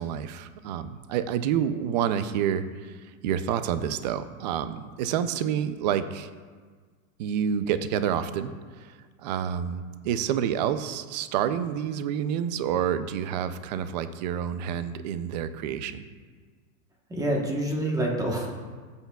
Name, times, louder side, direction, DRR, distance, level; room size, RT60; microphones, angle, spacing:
voice 1, 0.0-6.3 7.2-16.1, right 9 dB, 35° right, 12 dB, 0.4 m, -28 dB
voice 2, 17.1-18.5, right 1 dB, 10° right, -1 dB, 1.1 m, -27 dB
15.5 x 8.2 x 2.3 m, 1.5 s
supercardioid pair, 155°, 41 cm